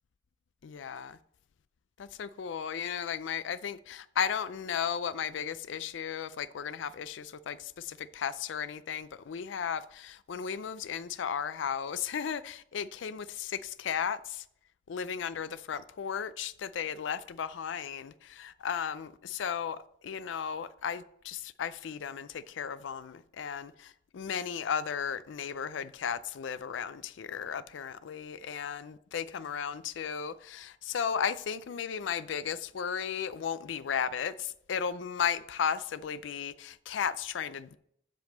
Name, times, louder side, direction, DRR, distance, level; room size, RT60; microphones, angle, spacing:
voice 1, 0.6-1.2 2.0-14.5 14.9-37.8, left 7 dB, 85° left, 0.4 m, -35 dB
7.7 x 5.3 x 7.5 m
head